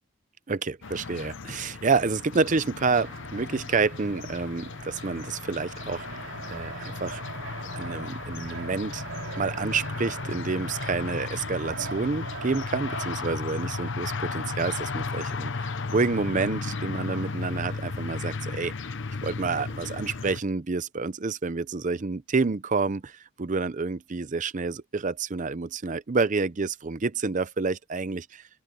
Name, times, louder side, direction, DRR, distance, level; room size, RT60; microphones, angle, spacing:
voice 1, 0.5-7.2 7.8-9.0 9.4-18.7 19.2-28.5, right 4 dB, 35° right, 0.5 m, -28 dB
sound 1, 0.8-20.4, left 4 dB, 60° left, 0.8 m, -35 dB
Fixed-wing aircraft airplane, 3.0-18.3, right 3 dB, 60° right, 3.8 m, -42 dB
open air
head